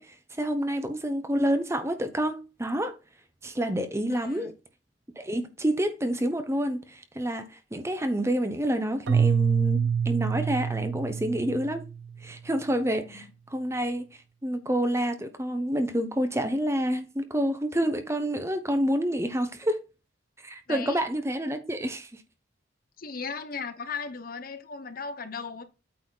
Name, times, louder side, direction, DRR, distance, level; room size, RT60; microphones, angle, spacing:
voice 1, 0.0-3.0 3.4-4.5 5.2-7.5 7.7-11.8 12.2-13.2 13.5-14.0 14.4-19.8 20.4-22.1, equal, 15° right, 0.9 m, -28 dB
voice 2, 4.1-4.5 12.9-13.3 20.7-21.0 23.0-25.6, left 5 dB, 50° left, 0.9 m, -37 dB
Keyboard (musical), 9.1-12.2, right 7 dB, 75° right, 0.4 m, -26 dB
8.6 x 4.1 x 4.0 m
head